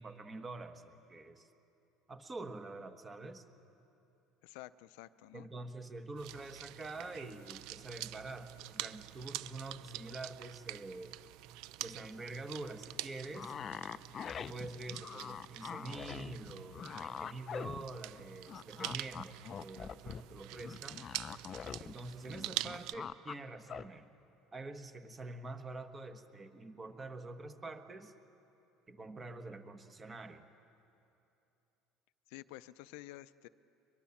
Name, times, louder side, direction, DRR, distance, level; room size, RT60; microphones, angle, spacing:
voice 1, 0.0-1.5 2.1-3.4 5.3-11.2 11.8-13.5 14.4-21.0 21.8-24.1 24.5-28.1 28.9-30.4, right 2 dB, 20° right, 8 dB, 1.3 m, -46 dB
voice 2, 4.4-5.5 32.3-33.5, left 17 dB, 85° left, 15 dB, 0.5 m, -50 dB
sound 1, 6.2-23.0, right 16 dB, 70° right, 0.5 m, -46 dB
sound 2, 13.3-18.2 18.5-21.9 22.2-23.4 23.7-23.9, left 7 dB, 35° left, 0.5 m, -44 dB
22.5 x 22.5 x 7.2 m, 2.8 s
cardioid pair, 140°, 0 cm